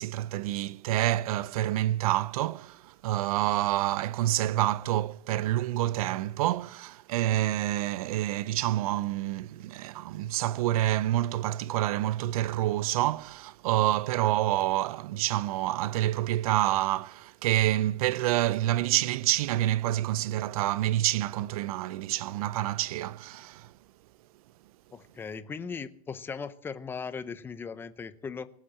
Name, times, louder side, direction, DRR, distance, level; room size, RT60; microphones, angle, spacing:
voice 1, 0.0-23.7, right 14 dB, 65° right, 0.6 m, -28 dB
voice 2, 24.9-28.5, left 5 dB, 10° left, 0.6 m, -38 dB
19.0 x 7.4 x 7.5 m
supercardioid pair, 155°, 20 cm